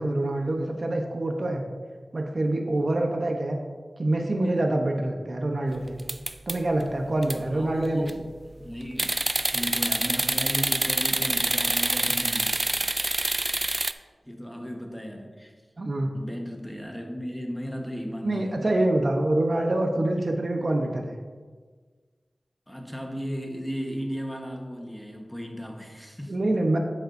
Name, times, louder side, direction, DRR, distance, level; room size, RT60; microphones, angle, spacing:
voice 1, 0.0-1.6 2.1-3.6 4.0-6.0 6.5-8.1 15.8-16.1 18.2-21.1 26.3-26.8, right 1 dB, 50° right, 3 dB, 0.9 m, -25 dB
sound 1, 6.0-6.8 7.2-7.4 7.8-8.2 9.0-13.9, right 2 dB, 30° right, 0.3 m, -26 dB
voice 2, 7.5-8.2 8.6-9.2 9.5-13.1 13.8-15.5 16.1-18.9 22.7-26.6, equal, 5° left, 1 dB, 1.2 m, -35 dB
9.5 x 8.7 x 2.6 m, 1.5 s
wide cardioid pair, 80°, 0 cm